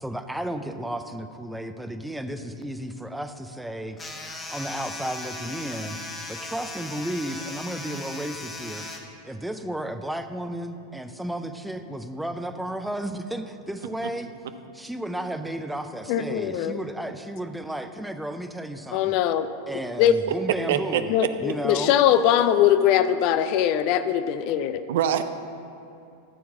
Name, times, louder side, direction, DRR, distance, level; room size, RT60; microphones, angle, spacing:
voice 1, 0.0-4.0 4.5-6.0 6.3-8.9 9.2-14.3 14.7-19.2 19.7-21.9, right 1 dB, 5° right, 8 dB, 0.6 m, -33 dB
sound 1, 4.0-9.0, left 2 dB, 15° left, 1.3 m, -37 dB
voice 2, 16.1-16.8 18.9-19.5 20.0-20.1 21.1-24.8, left 10 dB, 45° left, 11 dB, 0.5 m, -21 dB
voice 3, 20.7-21.3 24.9-25.2, right 10 dB, 55° right, 10 dB, 0.5 m, -25 dB
13.0 x 4.7 x 7.3 m, 2.6 s
figure-of-eight pair, 90°, 0 cm